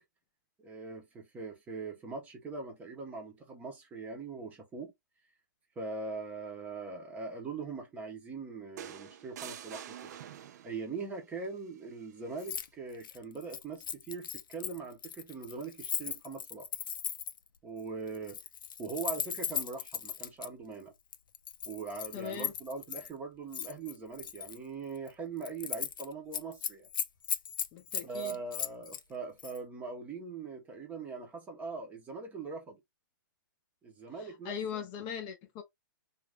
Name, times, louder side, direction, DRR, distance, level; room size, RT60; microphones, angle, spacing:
voice 1, 0.6-4.9 5.8-10.1 10.6-16.7 17.6-18.4 18.8-20.9 21.7-26.9 28.0-32.8 33.8-34.8, right 4 dB, 15° right, 0.7 m, -41 dB
sound 1, 8.8-10.9 12.3-12.5, right 10 dB, 50° right, 0.4 m, -46 dB
Keys jangling, 12.4-12.7 12.9-17.5 18.1-20.5 21.1-23.1 23.5-24.6 25.0-25.1 25.4-26.0 26.3-29.0 29.4-29.6, left 8 dB, 75° left, 0.5 m, -37 dB
voice 2, 22.1-22.5 27.7-28.4 34.2-35.6, left 8 dB, 30° left, 0.5 m, -40 dB
2.5 x 2.3 x 3.3 m
hypercardioid pair, 150°, 11 cm